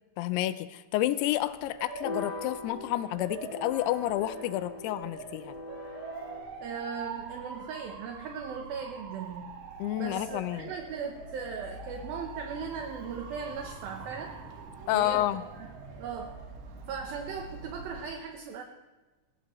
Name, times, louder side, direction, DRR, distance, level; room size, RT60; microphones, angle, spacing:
voice 1, 0.2-5.6 9.8-10.7 14.9-15.4, left 14 dB, 80° left, 13 dB, 2.5 m, -30 dB
Motor vehicle (road) / Siren, 1.2-18.0, right 4 dB, 90° right, 3.8 m, -44 dB
sound 1, 2.0-6.4, left 2 dB, 45° left, 2.7 m, -41 dB
voice 2, 6.6-9.5 10.0-14.4 14.9-15.3 15.6-15.7 16.0-16.4 16.9-18.6, right 6 dB, 70° right, 3 dB, 2.5 m, -38 dB
19.5 x 17.0 x 3.1 m, 1.2 s
omnidirectional pair, 4.8 m